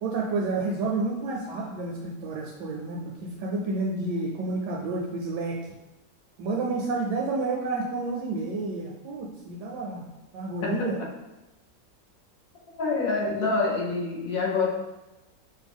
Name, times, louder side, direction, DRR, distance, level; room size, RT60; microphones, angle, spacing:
voice 1, 0.0-5.6 6.4-10.0 10.3-10.9, right 3 dB, 75° right, 0 dB, 1.1 m, -30 dB
voice 2, 10.6-10.9 12.8-14.7, left 3 dB, 65° left, -2 dB, 1.0 m, -26 dB
4.8 x 2.2 x 3.5 m, 1.0 s
omnidirectional pair, 1.9 m